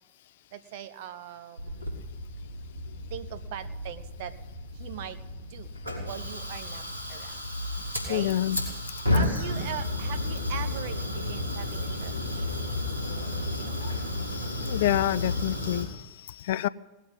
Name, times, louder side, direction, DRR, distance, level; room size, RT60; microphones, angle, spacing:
voice 1, 0.5-1.9 3.1-4.3 4.8-5.2 5.5-5.7 6.0-6.8 7.1-7.4 8.1-8.3 9.1-13.8, right 10 dB, 50° right, 11 dB, 1.2 m, -41 dB
Fire, 1.6-15.8, left 1 dB, 85° right, 3.6 m, -32 dB
voice 2, 8.1-8.6 13.0-16.7, left 13 dB, 55° left, 18 dB, 0.5 m, -29 dB
19.0 x 8.2 x 9.2 m, 1.1 s
figure-of-eight pair, 90°, 0 cm